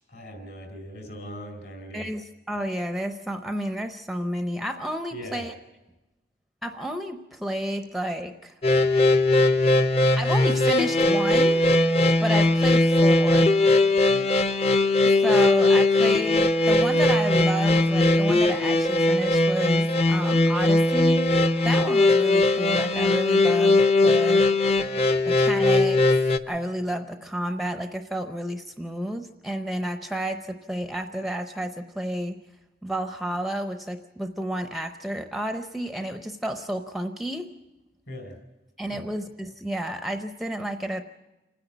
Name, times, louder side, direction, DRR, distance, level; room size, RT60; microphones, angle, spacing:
voice 1, 0.0-2.1 5.1-5.4 14.1-14.4 38.1-38.4 38.9-39.0, equal, 60° left, 5 dB, 4.5 m, -40 dB
voice 2, 1.9-5.5 6.6-8.6 10.2-11.6 12.2-13.5 15.0-21.4 21.6-24.5 25.3-26.0 26.5-32.4 32.8-37.5 38.8-41.0, right 1 dB, ahead, 6 dB, 0.6 m, -31 dB
sound 1, 8.6-26.4, left 2 dB, 35° left, 0.8 m, -20 dB
28.0 x 10.0 x 10.0 m, 1.0 s
head